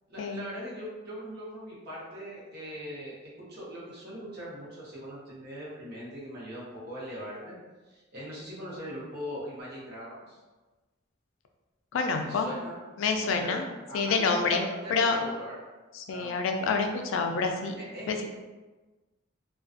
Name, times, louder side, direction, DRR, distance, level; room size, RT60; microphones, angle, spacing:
voice 1, 0.1-7.5 7.9-10.4 12.2-12.8 13.2-15.6 16.1-16.8 17.8-18.1, equal, 55° right, -7 dB, 0.8 m, -41 dB
voice 2, 11.9-12.5 13.0-13.6 13.9-15.2 15.9-17.7 18.1-18.2, left 4 dB, 75° left, 4 dB, 0.3 m, -27 dB
2.5 x 2.2 x 2.4 m, 1.2 s
head